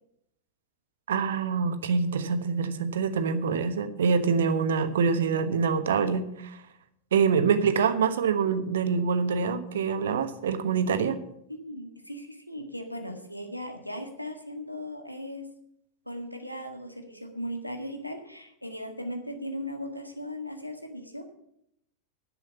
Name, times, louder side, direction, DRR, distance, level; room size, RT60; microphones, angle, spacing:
voice 1, 1.1-6.6 7.1-11.2, right 5 dB, 60° right, 10 dB, 1.1 m, -25 dB
voice 2, 11.5-15.5 16.1-21.3, equal, 90° left, 5 dB, 1.7 m, -38 dB
11.0 x 7.7 x 8.3 m, 0.77 s
figure-of-eight pair, 90°, 0 cm